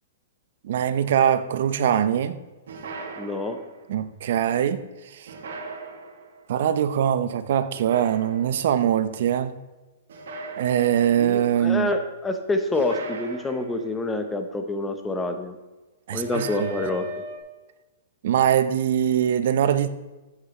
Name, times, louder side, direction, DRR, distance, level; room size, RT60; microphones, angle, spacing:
voice 1, 0.6-2.4 3.9-4.8 5.1-5.3 6.5-9.5 10.6-11.9 16.1-16.7 18.2-19.9, right 9 dB, 65° right, 0.8 m, -22 dB
sound 1, 2.7-3.9 5.3-6.4 7.7-8.7 10.1-11.3 12.7-14.1 16.1-17.4, right 2 dB, 80° right, 1.8 m, -38 dB
voice 2, 3.2-3.6 11.2-15.5 16.1-17.1, left 2 dB, 10° left, 1.0 m, -27 dB
14.0 x 8.4 x 3.2 m
hypercardioid pair, 150°, 0 cm